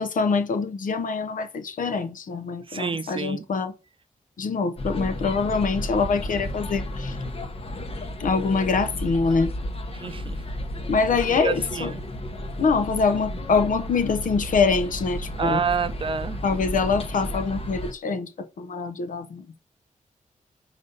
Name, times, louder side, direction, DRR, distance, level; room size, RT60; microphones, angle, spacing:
voice 1, 0.0-3.7 4.4-7.1 8.2-9.5 10.9-11.9 12.6-15.6 16.4-18.3 18.6-19.5, left 4 dB, 70° left, 0.8 m, -24 dB
voice 2, 2.7-3.5 10.0-10.4 11.3-12.0 15.4-16.4, right 5 dB, 40° right, 0.6 m, -28 dB
sound 1, 4.8-17.9, left 1 dB, 45° left, 1.0 m, -33 dB
5.3 x 4.1 x 5.2 m
wide cardioid pair, 105°, 14 cm